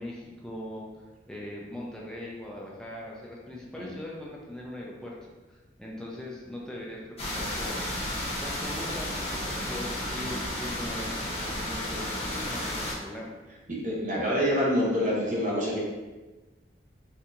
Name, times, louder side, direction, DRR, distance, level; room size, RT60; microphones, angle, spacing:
voice 1, 0.0-5.2 5.5-7.9 8.4-13.3, left 1 dB, 5° left, -4 dB, 0.5 m, -40 dB
sound 1, 7.2-12.9, left 1 dB, 35° left, 0.8 m, -32 dB
voice 2, 13.8-15.8, equal, 45° right, -4 dB, 0.9 m, -26 dB
4.4 x 2.7 x 2.6 m, 1.2 s
head